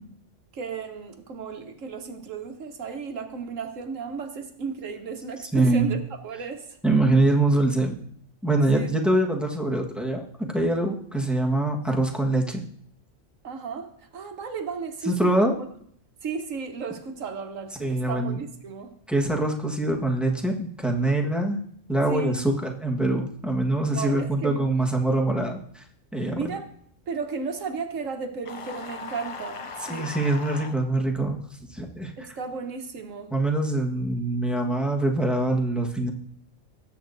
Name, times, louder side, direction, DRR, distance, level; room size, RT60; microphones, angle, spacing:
voice 1, 0.5-6.7 8.7-8.9 13.4-15.3 16.2-18.9 22.1-22.4 23.9-24.6 26.3-26.7 27.1-30.1 32.2-33.3, right 5 dB, 80° right, 5 dB, 1.5 m, -34 dB
voice 2, 5.5-6.0 6.8-8.0 8.4-12.6 15.0-15.5 17.8-18.4 19.1-21.6 21.9-25.8 26.1-26.5 29.9-31.4 31.7-32.1 33.3-36.1, right 2 dB, ahead, 0 dB, 1.3 m, -24 dB
sound 1, 28.4-30.8, left 4 dB, 50° left, 0.3 m, -38 dB
19.5 x 8.5 x 2.6 m, 0.65 s
omnidirectional pair, 1.3 m